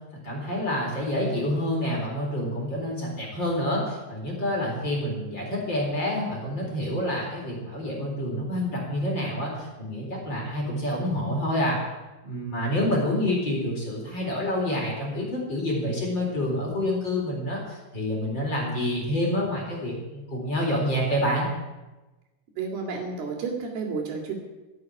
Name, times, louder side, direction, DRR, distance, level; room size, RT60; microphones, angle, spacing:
voice 1, 0.2-11.8 12.2-21.5, left 1 dB, 25° left, -3 dB, 4.5 m, -28 dB
voice 2, 22.6-24.3, right 5 dB, 70° right, 1 dB, 4.3 m, -31 dB
15.5 x 8.3 x 9.9 m, 1.1 s
omnidirectional pair, 4.7 m